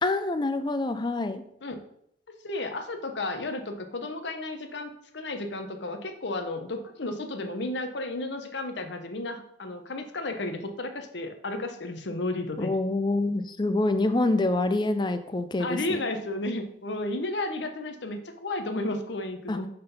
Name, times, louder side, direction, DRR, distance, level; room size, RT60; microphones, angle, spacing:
voice 1, 0.0-1.4 12.6-16.0 19.5-19.6, left 2 dB, 25° left, 10 dB, 0.5 m, -26 dB
voice 2, 2.4-12.7 15.6-19.7, left 2 dB, 70° left, 6 dB, 0.8 m, -33 dB
5.5 x 3.9 x 5.6 m, 0.72 s
head